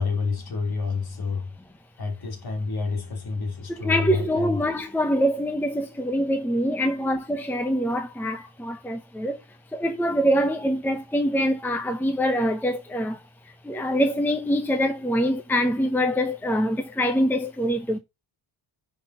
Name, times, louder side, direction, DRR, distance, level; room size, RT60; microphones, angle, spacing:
voice 1, 0.0-1.5 2.0-4.6, left 4 dB, 45° left, 2.7 m, -28 dB
voice 2, 3.7-9.4 9.7-18.0, equal, 5° left, 0.8 m, -24 dB
9.9 x 4.1 x 5.3 m
wide cardioid pair, 155°, 49 cm